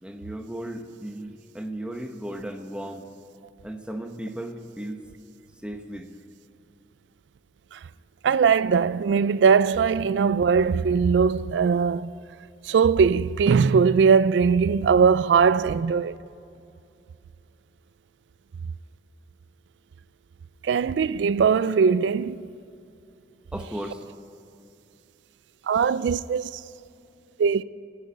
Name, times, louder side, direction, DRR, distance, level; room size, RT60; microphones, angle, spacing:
voice 1, 0.0-3.1 3.6-5.0 5.6-6.1 23.5-24.0, right 1 dB, 5° right, 0.9 m, -35 dB
voice 2, 8.2-12.1 12.6-16.2 20.6-22.5 25.7-26.6 27.4-27.6, right 6 dB, 80° right, 0.3 m, -20 dB
14.5 x 10.5 x 8.6 m
head